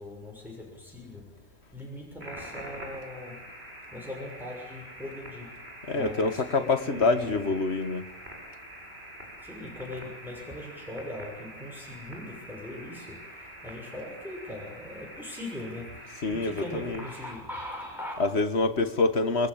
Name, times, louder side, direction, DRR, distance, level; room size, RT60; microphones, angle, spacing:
voice 1, 0.0-3.5 3.9-5.6 5.9-7.5 9.4-18.2, left 1 dB, ahead, 6.6 m, -40 dB
sound 1, 2.2-17.3, right 1 dB, 50° right, 8.1 m, -45 dB
voice 2, 5.9-8.1 16.2-17.0 18.2-19.5, left 3 dB, 55° left, 1.9 m, -26 dB
28.0 x 23.5 x 8.8 m
omnidirectional pair, 1.4 m